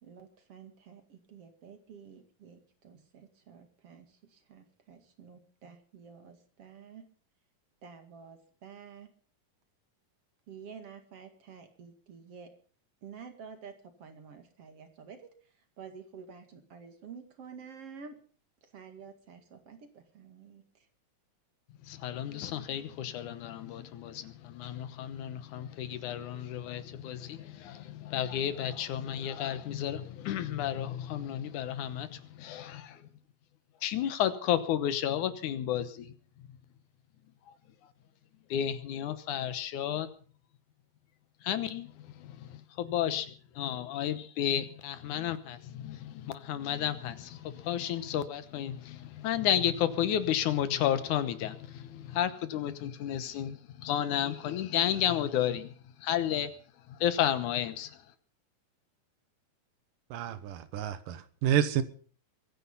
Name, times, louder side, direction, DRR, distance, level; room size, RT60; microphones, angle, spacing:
voice 1, 0.0-7.1 7.8-9.1 10.5-12.5 13.0-15.3 15.8-18.2 18.6-20.9, right 6 dB, 50° right, 2.8 m, -50 dB
voice 2, 21.8-33.0 33.8-36.1 38.5-40.1 41.4-55.7 56.0-56.5 56.9-58.0, left 10 dB, 70° left, 2.4 m, -32 dB
voice 3, 60.1-61.8, right 10 dB, 90° right, 2.8 m, -29 dB
23.0 x 10.0 x 5.5 m
omnidirectional pair, 3.7 m